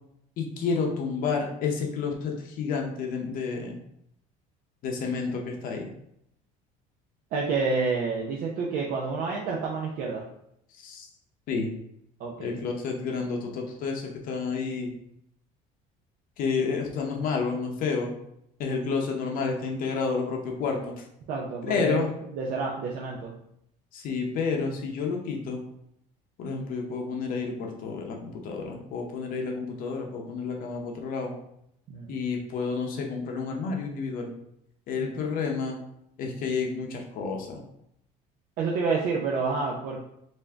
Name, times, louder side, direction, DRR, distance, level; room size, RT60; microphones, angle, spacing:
voice 1, 0.4-3.8 4.8-5.9 10.7-11.1 11.5-11.7 12.4-14.9 16.4-18.1 18.6-21.0 21.6-22.1 23.9-25.6 26.4-31.3 32.1-34.3 34.9-35.8 36.2-37.6, left 5 dB, 60° left, 1 dB, 0.7 m, -30 dB
voice 2, 7.3-10.2 12.2-12.6 21.3-22.0 22.4-23.3 31.9-32.2 35.0-35.3 38.6-40.0, right 4 dB, 60° right, -2 dB, 0.6 m, -29 dB
3.5 x 2.6 x 3.3 m, 0.76 s
cardioid pair, 135°, 17 cm